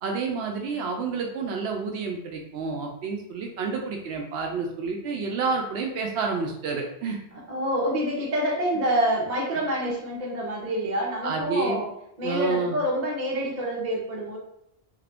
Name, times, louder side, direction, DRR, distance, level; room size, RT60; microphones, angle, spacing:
voice 1, 0.0-7.2 11.2-11.8 12.2-12.8, right 4 dB, 80° right, 1 dB, 0.8 m, -29 dB
voice 2, 7.5-11.9 12.2-14.4, equal, 45° right, -3 dB, 1.0 m, -27 dB
3.6 x 2.4 x 3.4 m, 0.79 s
omnidirectional pair, 1.1 m